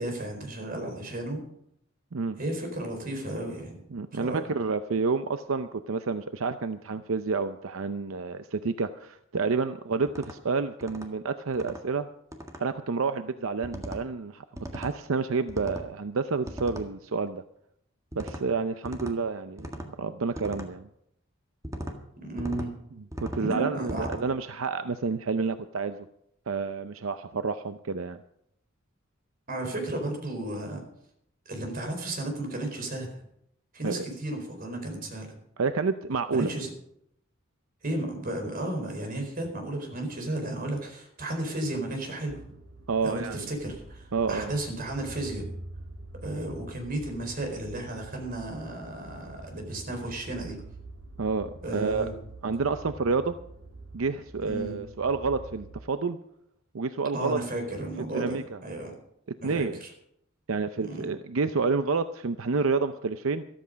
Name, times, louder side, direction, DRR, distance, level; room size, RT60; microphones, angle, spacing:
voice 1, 0.0-1.4 2.4-3.8 4.1-4.4 22.2-22.7 23.4-24.1 29.5-30.8 31.5-33.2 33.7-35.3 36.3-36.7 37.8-42.4 43.0-45.5 46.2-50.6 51.6-52.1 54.5-54.8 57.1-58.9 59.4-59.9 60.8-61.1, right 1 dB, 45° right, 4 dB, 4.4 m, -33 dB
voice 2, 3.9-12.1 12.6-14.4 14.7-17.4 18.2-19.7 20.0-20.9 23.2-26.1 26.5-28.2 33.8-34.1 35.6-36.5 42.9-43.4 44.1-44.6 51.2-52.1 52.4-53.4 53.9-56.2 56.7-57.4 58.1-58.6 59.4-59.8 60.5-63.4, right 4 dB, 80° right, 10 dB, 0.6 m, -29 dB
sound 1, 10.1-10.4 10.8-11.1 11.5-11.8 12.3-12.6 13.6-14.0 14.6-14.9 15.5-15.9 16.5-16.9 18.1-18.4 18.8-19.2 19.6-19.9 20.3-20.7 21.6-22.0 22.4-22.7 23.1-23.4 23.9-24.2, equal, 15° right, 1.7 m, -38 dB
sound 2, 42.3-55.8, right 2 dB, 65° right, 1.7 m, -45 dB
14.0 x 13.5 x 5.2 m, 0.74 s
head